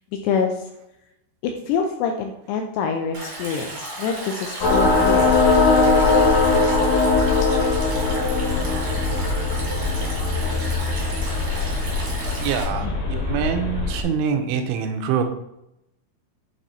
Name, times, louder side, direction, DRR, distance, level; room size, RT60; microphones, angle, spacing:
voice 1, 0.2-0.5 1.4-5.4 12.8-12.9, left 6 dB, 85° left, 3 dB, 2.4 m, -25 dB
Stream, 3.1-12.6, right 2 dB, 60° right, 1.2 m, -34 dB
sound 1, 4.6-14.0, left 3 dB, 65° left, 2.1 m, -20 dB
voice 2, 12.4-15.2, right 7 dB, 85° right, 6 dB, 3.1 m, -25 dB
8.8 x 3.0 x 4.2 m, 0.83 s
omnidirectional pair, 5.3 m